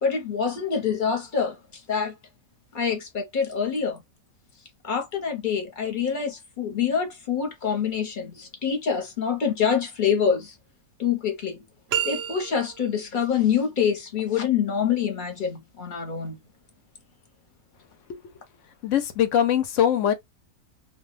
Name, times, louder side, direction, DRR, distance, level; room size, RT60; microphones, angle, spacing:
voice 1, 0.0-2.1 2.7-4.0 4.8-10.6 11.0-11.6 12.0-16.4, left 7 dB, 40° left, 0.9 m, -26 dB
sound 1, 11.9-13.0, right 9 dB, 65° right, 0.8 m, -29 dB
voice 2, 18.8-20.1, left 9 dB, 65° left, 0.9 m, -21 dB
2.4 x 2.3 x 3.2 m
omnidirectional pair, 1.5 m